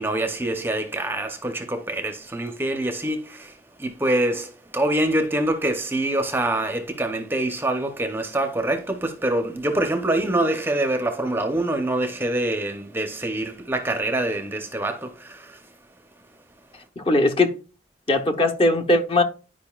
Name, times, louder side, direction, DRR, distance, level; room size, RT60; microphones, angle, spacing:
voice 1, 0.0-15.7, right 1 dB, 10° right, 0.7 m, -25 dB
voice 2, 17.0-17.6 18.1-19.2, left 2 dB, 30° left, 0.9 m, -19 dB
10.5 x 5.1 x 2.3 m
head